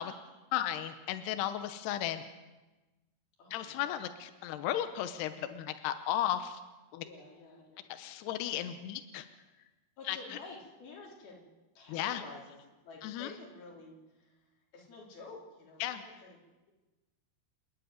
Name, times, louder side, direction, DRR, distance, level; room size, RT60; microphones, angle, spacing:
voice 1, 0.0-0.4 3.4-4.0 7.0-7.9 8.5-8.8 10.0-11.4 11.8-12.6 12.8-14.4 14.7-16.4, left 3 dB, 50° left, -2 dB, 5.7 m, -50 dB
voice 2, 0.5-2.2 3.5-6.6 6.9-7.1 7.9-9.3 10.1-10.2 11.9-12.2 13.0-13.3 15.8-16.0, left 12 dB, 80° left, 9 dB, 2.4 m, -35 dB
29.0 x 11.0 x 9.5 m, 1.1 s
omnidirectional pair, 5.9 m